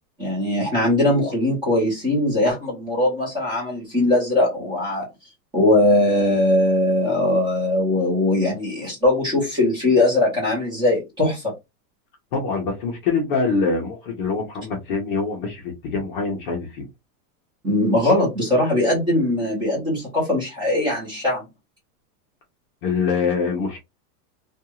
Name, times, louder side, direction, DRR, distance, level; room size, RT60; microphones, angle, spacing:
voice 1, 0.2-5.1 5.5-11.5 17.6-21.4, left 1 dB, 10° right, 0.8 m, -20 dB
voice 2, 12.3-16.9 22.8-23.8, left 4 dB, 35° left, 0.6 m, -24 dB
2.5 x 2.3 x 2.9 m
supercardioid pair, 175°, 48 cm